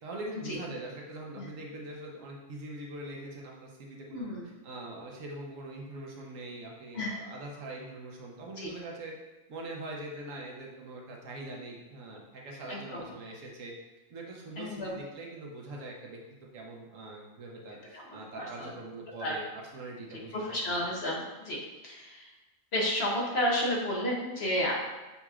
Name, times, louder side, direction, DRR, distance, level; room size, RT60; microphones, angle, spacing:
voice 1, 0.0-9.1 9.5-13.7 14.1-16.2 16.5-19.4 19.7-20.6, right 2 dB, 70° right, -1 dB, 1.2 m, -43 dB
voice 2, 4.1-4.4 6.9-7.1 8.6-8.7 12.7-13.0 14.6-15.0 17.9-18.7 19.2-19.4 20.3-21.6 21.8-22.3 22.7-24.7, left 1 dB, 55° left, -2 dB, 1.0 m, -32 dB
6.8 x 3.0 x 2.3 m, 1.2 s
omnidirectional pair, 1.4 m